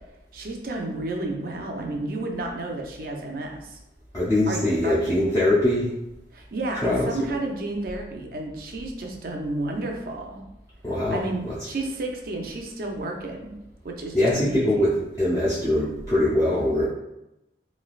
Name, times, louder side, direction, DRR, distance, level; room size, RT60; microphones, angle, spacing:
voice 1, 0.3-3.8 4.5-4.9 6.3-10.4 11.1-13.6 13.8-14.9, right 2 dB, 50° right, 1 dB, 0.5 m, -31 dB
voice 2, 4.1-5.9 6.8-7.1 10.8-11.5 14.1-14.9 15.2-16.9, left 1 dB, 20° left, -11 dB, 0.5 m, -22 dB
3.2 x 2.8 x 2.3 m, 0.91 s
head